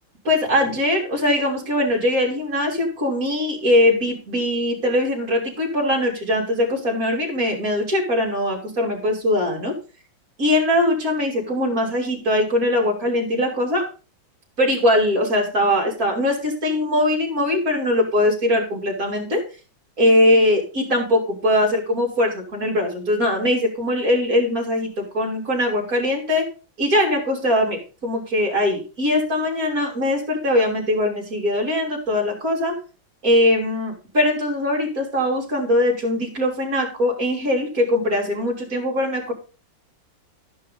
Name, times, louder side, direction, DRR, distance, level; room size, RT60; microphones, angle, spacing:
voice 1, 0.2-9.7 10.4-13.8 14.6-19.4 20.0-26.4 26.8-32.8 33.2-39.3, left 1 dB, 45° right, 0 dB, 3.9 m, -21 dB
14.0 x 5.5 x 5.4 m, 0.35 s
omnidirectional pair, 2.1 m